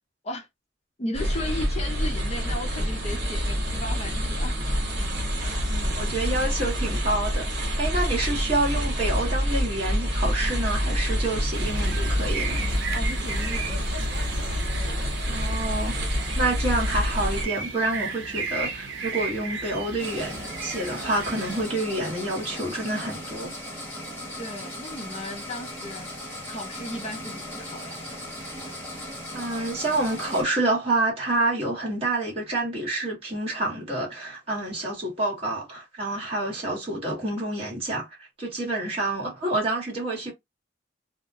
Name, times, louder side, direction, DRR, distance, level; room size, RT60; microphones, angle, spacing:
voice 1, 1.0-4.6 5.4-5.5 12.9-14.1 24.4-26.1 26.5-28.0, left 1 dB, 35° left, 0.5 m, -35 dB
sound 1, 1.1-17.5, equal, 60° right, 1.0 m, -27 dB
voice 2, 5.7-7.5 7.8-12.8 15.3-16.0 16.3-23.5 29.3-38.1 38.4-40.3, right 2 dB, 30° right, 1.2 m, -28 dB
sound 2, 11.5-21.6, right 5 dB, 85° right, 0.6 m, -35 dB
sound 3, 20.0-30.4, left 1 dB, 10° left, 1.0 m, -37 dB
2.3 x 2.1 x 2.7 m
head